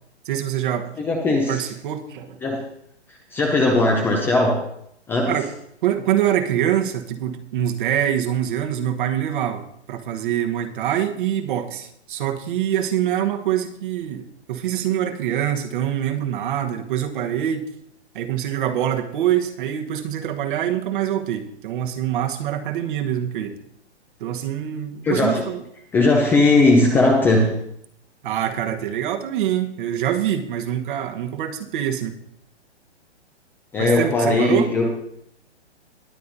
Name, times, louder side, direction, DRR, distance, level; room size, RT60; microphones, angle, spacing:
voice 1, 0.2-0.9 1.5-2.4 5.3-5.5 5.8-9.6 9.9-17.6 18.1-23.6 24.2-25.6 28.2-32.1 33.8-34.7, right 10 dB, 45° right, 5 dB, 1.2 m, -24 dB
voice 2, 1.0-1.7 2.4-2.6 3.1-4.6 5.1-5.3 25.0-25.4 25.9-27.6 33.7-34.9, left 2 dB, 5° left, 0 dB, 0.5 m, -18 dB
19.5 x 8.4 x 2.7 m, 0.74 s
hypercardioid pair, 145°, 35 cm